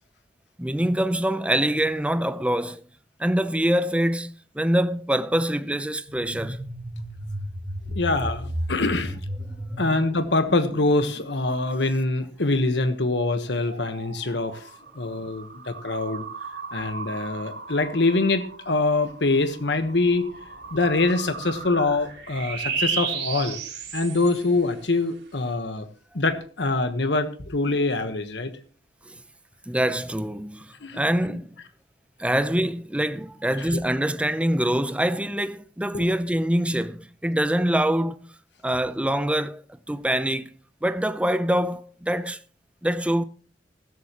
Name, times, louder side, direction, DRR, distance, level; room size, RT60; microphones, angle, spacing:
voice 1, 0.6-2.8 3.2-6.6 9.7-9.8 27.7-27.8 29.1-29.2 29.7-31.5 32.2-38.3 38.6-39.6 39.9-40.5 40.8-42.4 42.8-43.2, right 1 dB, 5° right, 0.6 m, -25 dB
sound 1, 6.1-12.1 12.6-24.7, right 3 dB, 85° right, 4.1 m, -35 dB
voice 2, 7.9-9.2 9.8-14.7 14.9-16.2 16.7-20.2 20.7-23.6 23.9-25.9 26.1-28.5 30.8-31.0 31.3-31.4 33.6-33.8 35.9-36.0, left 2 dB, 75° left, 1.2 m, -24 dB
15.5 x 13.5 x 3.0 m
head